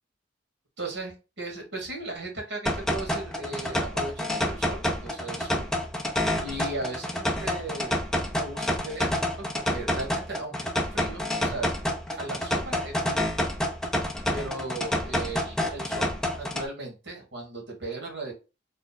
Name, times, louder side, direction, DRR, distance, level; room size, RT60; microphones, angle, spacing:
voice 1, 0.8-5.7 6.4-8.0 8.3-11.7 12.2-13.2 14.3-18.3, right 2 dB, 65° right, 0 dB, 1.7 m, -37 dB
sound 1, 2.7-16.7, left 1 dB, 5° left, 0.6 m, -28 dB
3.3 x 2.2 x 4.0 m, 0.30 s
head